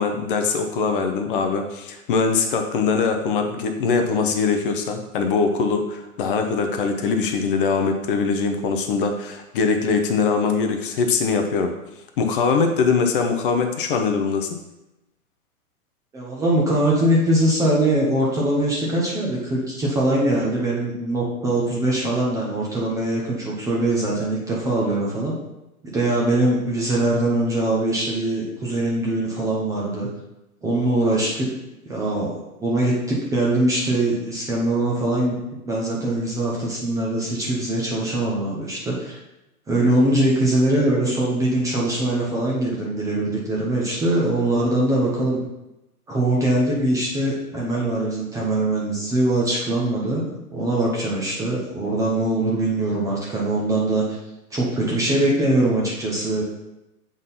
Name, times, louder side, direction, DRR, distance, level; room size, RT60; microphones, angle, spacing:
voice 1, 0.0-11.7 12.2-14.5, left 5 dB, 35° left, 5 dB, 0.7 m, -22 dB
voice 2, 16.1-25.3 25.9-30.1 30.6-31.5 31.9-32.3 32.6-35.4 35.7-39.2 39.7-45.4 46.1-54.2 54.5-56.4, right 1 dB, 5° right, -5 dB, 0.6 m, -22 dB
7.3 x 3.9 x 4.0 m, 0.95 s
hypercardioid pair, 130°, 44 cm